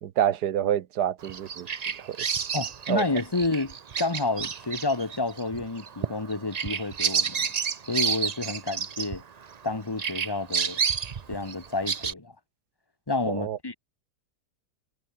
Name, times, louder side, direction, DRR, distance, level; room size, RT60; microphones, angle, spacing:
voice 1, 0.0-1.7 2.0-2.2 2.9-3.0 13.3-13.6, right 10 dB, 85° right, 1.5 m, -27 dB
Bird vocalization bird call bird song, 1.2-9.7 10.0-12.1, right 7 dB, 50° right, 0.4 m, -30 dB
voice 2, 2.5-7.5 7.9-9.2 9.6-10.8 11.3-12.3 13.1-13.7, left 3 dB, 15° left, 1.3 m, -30 dB
omnidirectional pair, 1.7 m